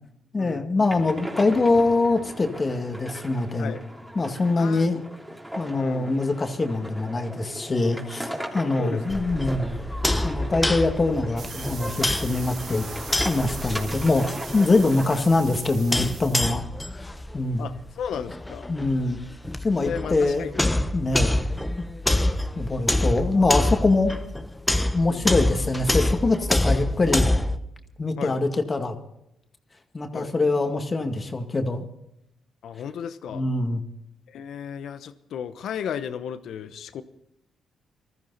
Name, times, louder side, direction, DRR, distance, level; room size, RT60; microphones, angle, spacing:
voice 1, 0.3-3.8 4.2-5.0 5.6-9.7 10.2-12.8 13.2-14.2 14.5-16.6 16.9-17.1 17.3-17.7 18.7-19.2 19.6-21.4 21.8-21.9 22.6-24.1 24.9-27.3 28.0-29.0 29.9-31.8 33.3-33.8, left 2 dB, 35° left, 5 dB, 2.0 m, -24 dB
sound 1, 0.8-15.2, equal, 10° right, 3.2 m, -38 dB
voice 2, 4.5-4.9 5.7-6.1 8.8-9.2 15.1-15.3 17.6-18.7 19.8-20.8 21.1-21.3 25.1-25.5 28.2-28.4 30.1-30.3 32.6-33.4 34.3-37.0, left 8 dB, 75° left, 12 dB, 0.9 m, -35 dB
sound 2, 9.1-27.6, left 1 dB, 10° left, 1.1 m, -27 dB
sound 3, 11.4-16.5, right 7 dB, 65° right, 1.4 m, -41 dB
20.0 x 14.0 x 4.1 m, 0.80 s
supercardioid pair, 65°, 0 cm